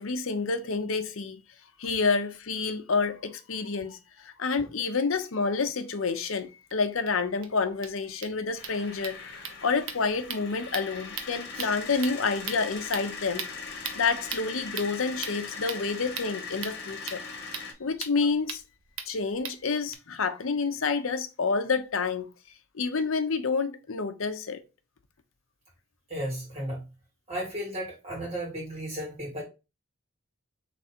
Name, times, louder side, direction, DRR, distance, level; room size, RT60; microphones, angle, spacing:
voice 1, 0.0-1.4 1.8-13.5 13.9-17.2 17.8-18.6 19.1-22.3 22.7-24.6, left 4 dB, 75° left, 0.7 m, -29 dB
sound 1, 6.7-6.8 7.1-7.2 7.4-7.5 7.7-19.9, right 7 dB, 75° right, 0.8 m, -41 dB
sound 2, 8.5-17.7, left 4 dB, 50° left, 1.3 m, -40 dB
voice 2, 26.1-26.9 27.3-29.4, equal, 30° right, 2.7 m, -34 dB
3.7 x 3.4 x 4.3 m
head